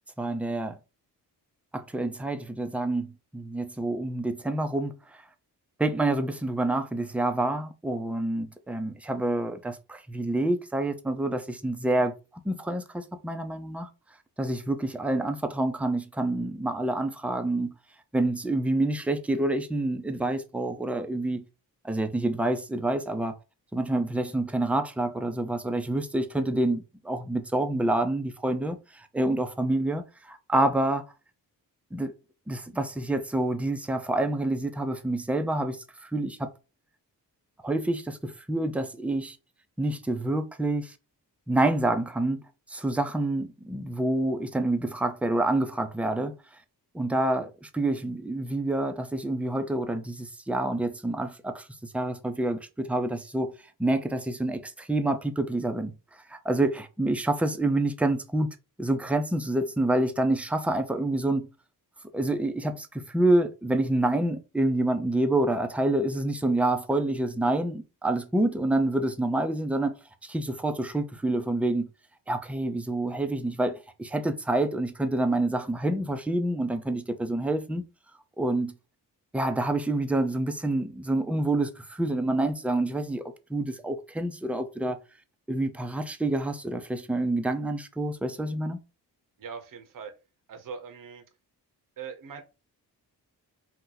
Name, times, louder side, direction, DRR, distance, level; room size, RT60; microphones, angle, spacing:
voice 1, 0.2-0.8 1.7-4.9 5.8-12.1 12.4-13.9 14.4-17.7 18.1-21.4 21.8-23.3 23.7-31.0 31.9-32.1 32.5-36.5 37.6-39.4 39.8-40.9 41.5-42.4 42.7-46.3 46.9-51.7 51.9-53.5 53.8-55.9 56.3-58.5 58.8-61.5 62.1-70.0 70.2-71.9 72.3-77.8 78.4-78.8 79.3-83.2 83.5-85.0 85.5-88.8, right 2 dB, 5° right, 0.5 m, -27 dB
voice 2, 89.4-90.1 90.5-91.2 92.0-92.4, right 6 dB, 50° right, 0.8 m, -41 dB
2.8 x 2.1 x 3.8 m
cardioid pair, 50°, 42 cm